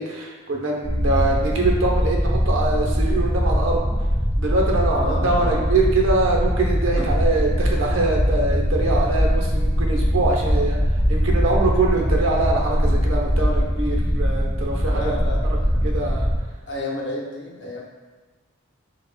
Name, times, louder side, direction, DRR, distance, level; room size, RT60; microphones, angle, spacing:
voice 1, 0.0-3.8 4.4-10.8 11.1-15.1 15.8-16.3, right 2 dB, 85° right, -1 dB, 0.8 m, -23 dB
sound 1, 0.8-16.4, equal, ahead, 0.9 m, -21 dB
voice 2, 4.9-5.6 7.0-7.3 12.0-12.1 14.8-15.9 16.7-17.8, left 1 dB, 65° left, -2 dB, 0.8 m, -31 dB
7.0 x 2.4 x 2.2 m, 1.3 s
head